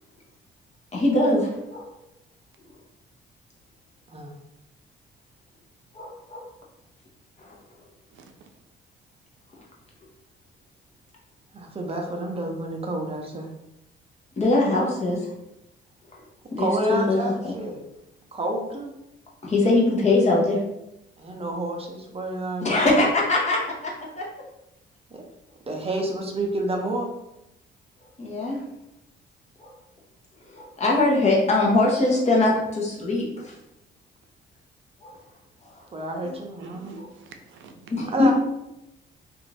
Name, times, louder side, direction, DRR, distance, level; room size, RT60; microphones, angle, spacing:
voice 1, 0.9-1.9 5.9-6.4 7.4-7.6 14.4-15.2 16.5-17.5 19.4-20.6 22.6-24.2 28.2-28.6 29.6-29.7 30.5-33.5 35.0-35.2 35.7-35.8 37.0-37.1 37.9-38.3, left 2 dB, 35° left, -3 dB, 0.9 m, -22 dB
voice 2, 8.1-8.5 36.2-37.9, right 3 dB, 75° right, 5 dB, 0.4 m, -46 dB
voice 3, 11.5-13.5 16.6-17.9 18.3-18.9 21.2-22.9 25.1-25.2 25.7-27.2 35.9-37.2 38.1-38.3, right 1 dB, 30° right, 1 dB, 0.6 m, -29 dB
2.5 x 2.5 x 3.2 m, 0.88 s
cardioid pair, 90°, 20 cm